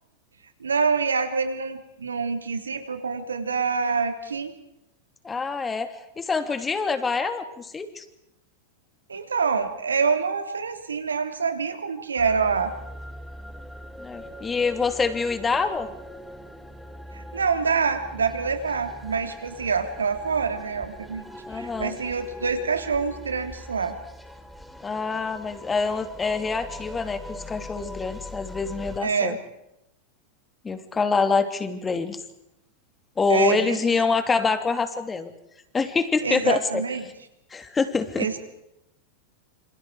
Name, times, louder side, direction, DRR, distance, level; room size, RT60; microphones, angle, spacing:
voice 1, 0.6-4.5 9.1-12.7 17.1-21.2 21.5-23.9 29.0-29.4 33.3-33.8 36.2-37.1 38.2-38.4, right 5 dB, 85° right, 7 dB, 3.2 m, -26 dB
voice 2, 5.2-8.0 14.0-15.9 21.5-21.9 24.8-29.4 30.6-32.2 33.2-35.3 35.7-36.8 37.5-38.3, left 4 dB, 20° left, 8 dB, 3.0 m, -25 dB
sound 1, 12.2-29.0, left 1 dB, ahead, 3.0 m, -41 dB
28.0 x 26.5 x 5.0 m, 0.85 s
figure-of-eight pair, 95°, 0 cm